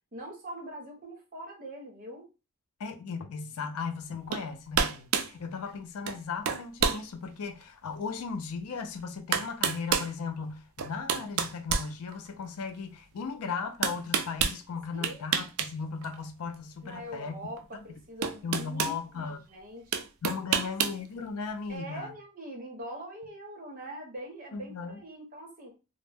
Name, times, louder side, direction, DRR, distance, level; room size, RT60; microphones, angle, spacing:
voice 1, 0.1-2.3 14.9-15.2 16.8-20.0 20.5-20.7 21.7-25.7, right 1 dB, 40° right, 0.9 m, -43 dB
voice 2, 2.8-17.4 18.4-19.4 20.2-22.1 24.5-25.0, left 5 dB, 85° left, 0.4 m, -37 dB
sound 1, 4.3-4.5 4.7-5.3 6.1-6.2 6.4-7.0 7.6-7.7 8.8-8.9 9.3-10.1 10.8-12.5 13.8-14.6 15.0-15.7 16.0-16.2 17.6-17.7 18.2-19.0 19.9-21.0, right 7 dB, 75° right, 0.3 m, -28 dB
2.1 x 2.0 x 3.3 m
head